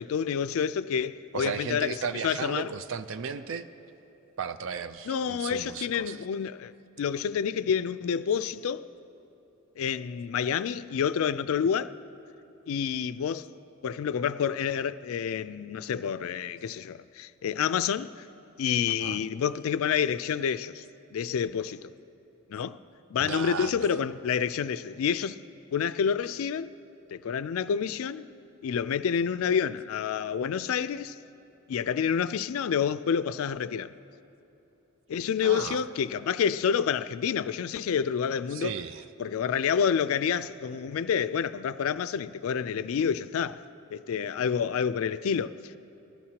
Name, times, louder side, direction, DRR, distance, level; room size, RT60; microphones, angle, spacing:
voice 1, 0.0-2.0 2.2-2.7 5.1-6.7 7.0-8.9 9.8-12.0 12.7-13.5 13.8-18.3 18.6-20.8 21.1-21.9 22.5-22.8 23.1-25.4 25.7-26.7 27.1-28.3 28.6-31.2 31.7-33.9 35.1-38.7 39.2-43.6 43.9-45.8, left 7 dB, 70° left, 0.3 m, -28 dB
voice 2, 1.3-3.7 4.4-6.2 19.0-19.2 23.2-23.9 35.4-35.8 38.5-39.0, right 6 dB, 60° right, 0.4 m, -35 dB
20.0 x 12.5 x 2.9 m
head